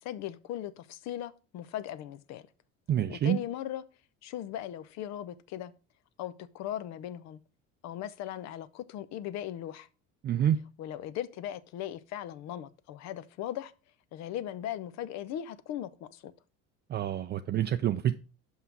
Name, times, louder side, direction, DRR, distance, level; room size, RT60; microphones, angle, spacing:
voice 1, 0.0-2.5 3.1-3.8 4.2-5.7 6.2-7.4 7.8-9.9 10.8-13.7 14.1-16.3, left 11 dB, 60° left, 0.8 m, -38 dB
voice 2, 2.9-3.4 10.2-10.6 16.9-18.1, right 10 dB, 35° right, 0.4 m, -27 dB
5.7 x 5.6 x 5.9 m
supercardioid pair, 100°, 31 cm